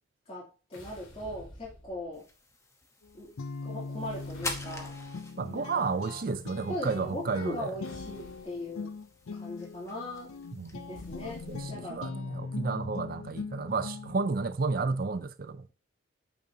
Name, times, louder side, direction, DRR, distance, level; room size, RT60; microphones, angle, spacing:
voice 1, 0.3-2.3 3.2-3.3 3.6-5.0 5.5-5.8 6.7-8.9 9.3-10.3 10.9-12.0, left 1 dB, 30° left, 2.8 m, -39 dB
sound 1, 0.7-2.3 3.8-5.3 7.8-8.7 11.0-12.1, equal, 70° left, 3.4 m, -51 dB
sound 2, 2.1-11.6, left 2 dB, 15° left, 1.0 m, -46 dB
Guitar, 3.0-14.3, left 4 dB, 85° left, 0.5 m, -41 dB
voice 2, 5.4-7.7 10.5-10.8 11.5-15.6, right 4 dB, 45° right, 0.4 m, -32 dB
8.6 x 6.5 x 2.8 m
head